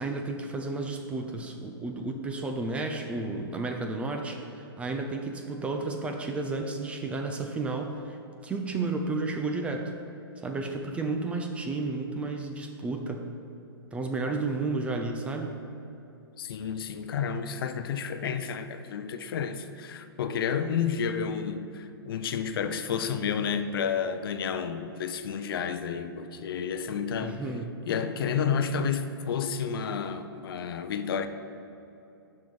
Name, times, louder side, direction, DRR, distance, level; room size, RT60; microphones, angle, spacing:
voice 1, 0.0-8.2 8.4-9.9 10.4-13.3 13.9-15.6 27.2-27.8, right 3 dB, 10° right, 0.4 m, -32 dB
voice 2, 16.4-27.4 27.9-31.3, left 7 dB, 60° left, 0.6 m, -31 dB
7.5 x 5.5 x 5.3 m
hypercardioid pair, 145°, 13 cm